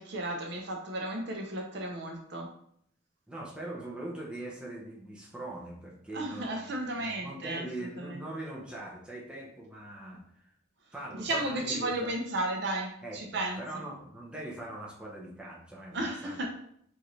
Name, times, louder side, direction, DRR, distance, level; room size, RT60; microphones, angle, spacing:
voice 1, 0.0-2.5 6.1-8.3 11.1-13.8 15.9-16.5, right 1 dB, 60° right, 1 dB, 0.7 m, -34 dB
voice 2, 3.3-10.5 10.9-12.1 13.0-16.5, right 1 dB, 5° right, -4 dB, 0.8 m, -42 dB
4.9 x 2.7 x 3.2 m, 0.68 s
head